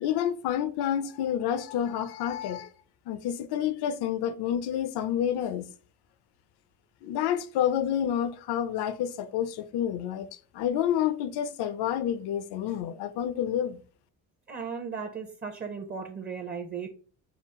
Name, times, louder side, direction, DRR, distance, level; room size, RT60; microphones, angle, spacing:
voice 1, 0.0-2.7 3.1-5.7 7.0-13.8, left 10 dB, 75° left, 0.6 m, -29 dB
voice 2, 14.5-16.9, right 6 dB, 25° right, 0.5 m, -36 dB
5.7 x 2.4 x 3.6 m
cardioid pair, 130°, 40 cm